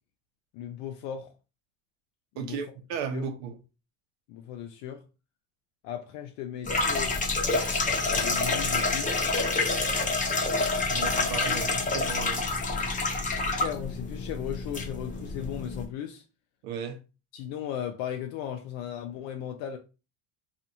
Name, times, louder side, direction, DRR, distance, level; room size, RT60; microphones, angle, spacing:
voice 1, 0.5-1.3 2.4-2.6 3.1-3.2 4.3-5.0 5.8-7.1 8.1-9.2 10.9-11.6 13.5-16.2 17.3-19.8, left 10 dB, 70° left, 0.5 m, -36 dB
voice 2, 2.4-3.6 10.9-12.4 16.6-17.0, right 6 dB, 80° right, 0.8 m, -35 dB
sound 1, 6.6-15.9, left 3 dB, 15° left, 0.7 m, -28 dB
2.5 x 2.5 x 2.7 m
supercardioid pair, 90°, 46 cm